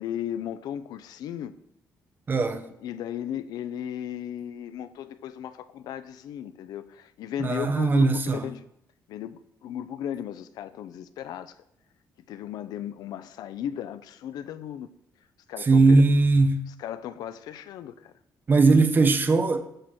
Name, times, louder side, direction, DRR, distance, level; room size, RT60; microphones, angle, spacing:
voice 1, 0.0-1.5 2.8-8.6 9.1-11.6 12.3-14.9 15.5-16.0 16.7-18.1, left 10 dB, 80° left, 0.7 m, -36 dB
voice 2, 2.3-2.6 7.4-8.4 15.7-16.6 18.5-19.6, right 3 dB, 30° right, 1.0 m, -19 dB
13.5 x 4.5 x 7.7 m
cardioid pair, 130°, 7 cm